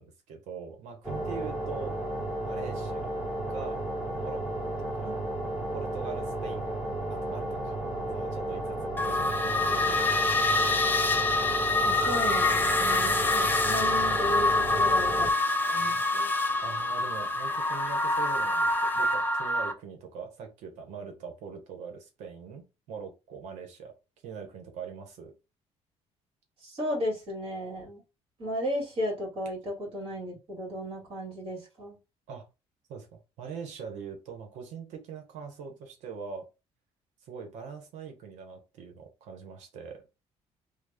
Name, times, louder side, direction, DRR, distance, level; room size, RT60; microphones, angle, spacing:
voice 1, 0.0-1.9 2.4-3.1 3.5-3.8 4.2-5.2 5.7-6.7 7.1-7.7 8.1-10.3 14.5-14.8 16.6-23.9 24.2-25.3 32.3-32.5 32.9-36.5 37.2-40.0, right 6 dB, 90° right, 4 dB, 1.0 m, -42 dB
sound 1, 1.0-15.3, right 1 dB, 10° right, 1.1 m, -33 dB
sound 2, 9.0-19.7, left 2 dB, 15° left, 0.6 m, -26 dB
voice 2, 11.8-15.3 15.7-16.3 26.6-28.0 28.4-32.0, equal, 50° right, -2 dB, 2.2 m, -34 dB
3.3 x 2.3 x 3.4 m, 0.27 s
cardioid pair, 105°, 12 cm